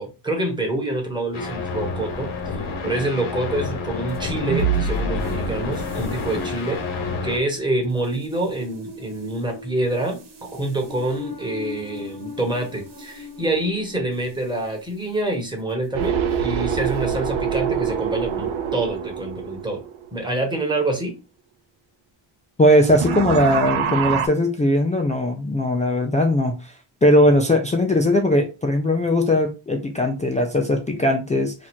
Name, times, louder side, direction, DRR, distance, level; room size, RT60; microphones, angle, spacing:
voice 1, 0.0-6.8 7.2-19.8 20.1-21.1, right 2 dB, 10° right, 2 dB, 1.0 m, -26 dB
sound 1, 1.3-7.4, left 4 dB, 75° left, 1.2 m, -29 dB
sound 2, 4.1-14.6, right 4 dB, 55° right, 1.2 m, -32 dB
sound 3, 15.9-20.5 22.7-24.3, right 7 dB, 80° right, 0.7 m, -25 dB
voice 2, 22.6-26.7 27.0-31.5, left 1 dB, 15° left, 0 dB, 0.3 m, -19 dB
2.9 x 2.5 x 4.2 m, 0.29 s
cardioid pair, 145°, 48 cm